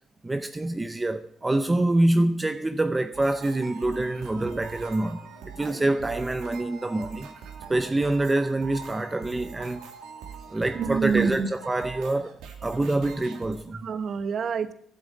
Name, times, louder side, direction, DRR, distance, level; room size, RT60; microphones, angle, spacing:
voice 1, 0.2-5.3 5.5-7.3 7.7-9.9 10.5-12.4 12.6-13.8, right 2 dB, 20° right, 0.6 m, -26 dB
sound 1, 3.1-13.6, right 6 dB, 80° right, 2.2 m, -43 dB
voice 2, 10.7-11.5 13.7-14.7, right 6 dB, 55° right, 1.0 m, -26 dB
11.5 x 7.9 x 8.4 m
supercardioid pair, 80°, 0 cm